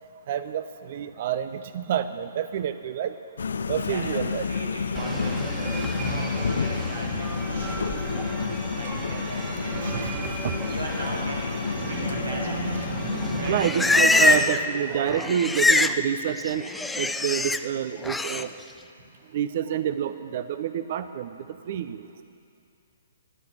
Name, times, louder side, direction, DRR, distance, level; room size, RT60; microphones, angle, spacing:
voice 1, 0.3-3.1 3.7-4.5 8.9-9.0 9.7-10.5 13.3-16.6 17.0-18.5 19.3-21.4 21.7-22.2, right 9 dB, 50° right, 12 dB, 0.7 m, -28 dB
sound 1, 3.4-13.7, left 5 dB, 75° left, 0.5 m, -30 dB
voice 2, 3.7-12.9 13.4-13.6 14.0-14.3 21.5-21.7, right 2 dB, 90° right, -2 dB, 4.9 m, -39 dB
sound 2, 4.9-14.5, right 4 dB, 15° right, 1.8 m, -35 dB
Livestock farm animals working animals, 13.3-14.7 14.9-16.0 16.3-17.6 18.0-18.4, left 3 dB, 5° left, 0.4 m, -23 dB
23.0 x 8.8 x 6.6 m, 2.6 s
hypercardioid pair, 135°, 0 cm